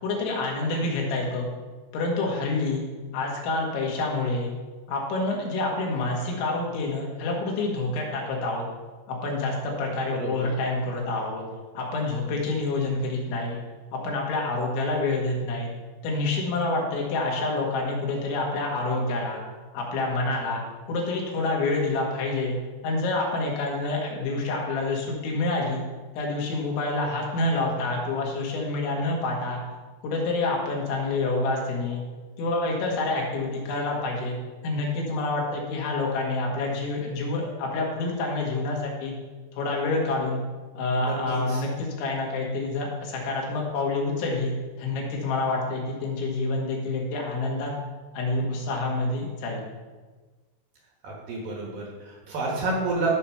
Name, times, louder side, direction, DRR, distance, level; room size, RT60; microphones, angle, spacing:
voice 1, 0.0-1.5 1.9-2.8 3.1-4.5 4.9-8.6 9.1-11.4 11.8-13.6 13.9-15.7 16.0-19.4 19.7-20.6 20.9-22.6 22.8-25.8 26.2-29.6 30.0-32.0 32.4-34.4 34.6-39.1 39.5-40.4 40.8-47.7 48.1-49.7, left 2 dB, 80° left, -1 dB, 4.0 m, -27 dB
voice 2, 41.0-41.6 51.0-53.2, right 3 dB, 65° right, -2 dB, 2.6 m, -29 dB
12.5 x 4.3 x 5.7 m, 1.3 s
omnidirectional pair, 5.3 m